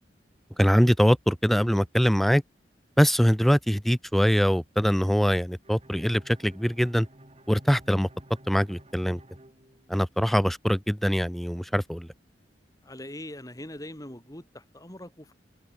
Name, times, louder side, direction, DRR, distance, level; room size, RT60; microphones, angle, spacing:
voice 1, 0.6-2.4 3.0-7.1 7.5-8.1 8.5-9.2 9.9-12.1, equal, ahead, 0.7 m, -23 dB
Bowed string instrument, 5.6-10.4, right 1 dB, 35° right, 4.8 m, -53 dB
voice 2, 12.8-15.3, left 1 dB, 20° left, 3.5 m, -42 dB
head